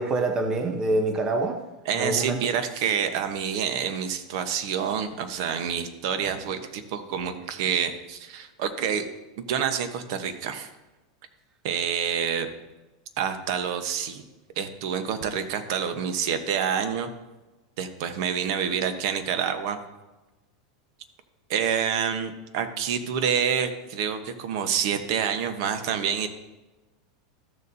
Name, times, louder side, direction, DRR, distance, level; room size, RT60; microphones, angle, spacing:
voice 1, 0.0-1.6 1.9-2.4, right 2 dB, 25° right, 6 dB, 0.8 m, -25 dB
voice 2, 1.8-9.1 9.4-10.7 11.6-12.5 13.2-14.2 14.6-17.1 17.8-19.8 21.5-26.3, right 7 dB, 60° right, 9 dB, 1.0 m, -27 dB
14.0 x 6.8 x 2.7 m, 1.1 s
supercardioid pair, 140°, 3 cm